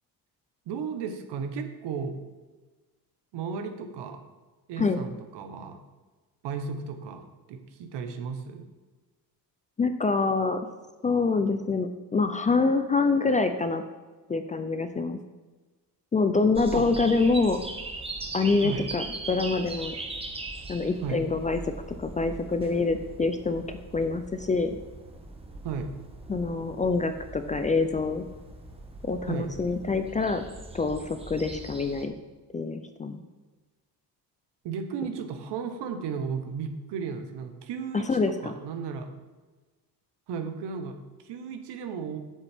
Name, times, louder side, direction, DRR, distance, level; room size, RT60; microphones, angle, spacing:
voice 1, 0.7-2.2 3.3-4.2 4.7-5.8 6.4-8.7 16.7-16.9 18.6-18.9 21.0-21.2 25.6-25.9 29.3-29.5 34.6-39.1 40.3-42.2, right 6 dB, 75° right, 7 dB, 1.1 m, -34 dB
voice 2, 9.8-10.6 11.0-13.8 14.3-15.2 16.1-17.6 18.3-19.9 20.7-21.6 22.0-23.6 23.9-24.8 26.3-28.2 29.0-30.4 30.7-32.1 32.5-33.2 37.9-38.3, left 4 dB, 20° left, 8 dB, 0.4 m, -26 dB
sound 1, 16.6-32.1, right 2 dB, 15° right, 0.9 m, -40 dB
8.0 x 7.2 x 3.5 m, 1.3 s
cardioid pair, 110°, 41 cm